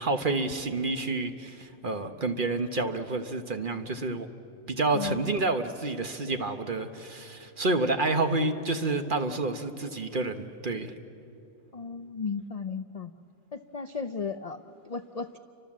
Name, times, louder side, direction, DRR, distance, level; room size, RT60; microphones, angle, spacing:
voice 1, 0.0-4.3 4.7-10.9, right 2 dB, 40° right, 7 dB, 1.2 m, -29 dB
voice 2, 4.9-5.3 11.7-13.1 13.5-15.4, left 5 dB, 45° left, 9 dB, 0.5 m, -35 dB
29.5 x 25.0 x 7.5 m, 2.6 s
omnidirectional pair, 1.4 m